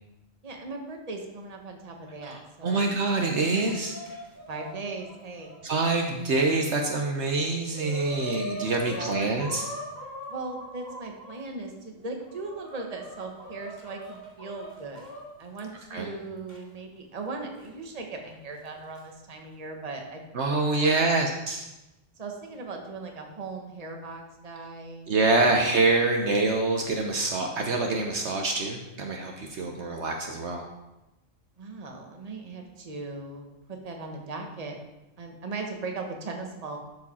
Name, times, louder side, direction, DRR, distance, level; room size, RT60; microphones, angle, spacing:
voice 1, 0.4-2.9 4.5-5.5 8.9-9.5 10.3-15.0 15.4-20.2 20.5-21.2 22.2-25.7 31.6-34.8 35.2-36.8, right 3 dB, 30° right, 2 dB, 1.1 m, -38 dB
voice 2, 2.2-4.0 5.6-9.7 15.9-16.1 20.3-21.6 25.1-30.7, right 3 dB, 65° right, 2 dB, 1.1 m, -26 dB
Chicken rooster, 3.0-6.4 7.0-7.1 7.3-11.4 12.0-15.2 16.5-16.6 17.6-17.7 18.7-19.0, left 1 dB, 15° right, 2.2 m, -41 dB
12.0 x 4.9 x 4.2 m, 0.98 s
omnidirectional pair, 1.3 m